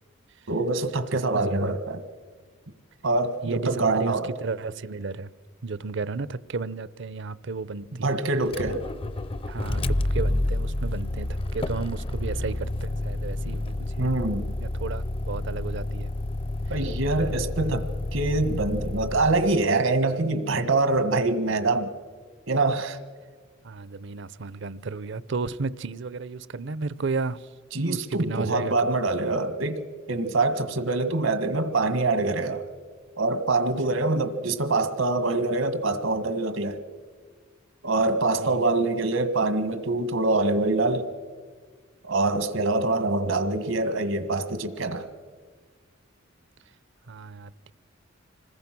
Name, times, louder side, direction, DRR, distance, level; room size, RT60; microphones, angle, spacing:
voice 1, 0.5-2.0 3.0-4.3 8.0-8.8 14.0-14.5 16.7-21.9 22.5-23.0 27.7-29.8 30.1-32.7 33.2-36.8 37.8-41.1 42.0-45.1, right 2 dB, 85° right, 1.8 m, -25 dB
voice 2, 1.3-1.8 3.4-5.3 5.6-8.2 9.4-14.1 14.6-16.1 16.7-16.8 23.6-27.5 27.8-28.7 38.4-38.7 47.1-47.7, right 4 dB, 65° right, 0.7 m, -33 dB
Motor vehicle (road), 8.4-19.6, left 1 dB, 30° left, 0.5 m, -29 dB
26.5 x 20.5 x 6.1 m
head